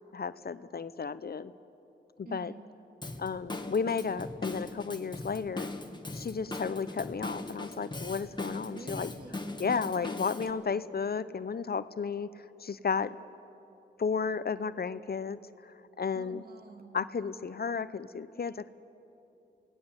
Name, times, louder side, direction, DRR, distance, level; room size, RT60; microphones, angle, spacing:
voice 1, 0.1-1.5 2.2-2.5 3.2-5.7 6.1-9.1 9.6-13.2 14.0-16.4 16.9-18.7, left 5 dB, 55° left, 15 dB, 0.7 m, -33 dB
voice 2, 2.2-2.6 8.6-9.8 16.1-17.1, right 3 dB, 50° right, 3 dB, 2.8 m, -48 dB
Drum kit / Drum, 3.0-10.5, left 2 dB, 25° left, 1.8 m, -40 dB
28.5 x 18.5 x 8.1 m, 2.9 s
cardioid pair, 55°, 19 cm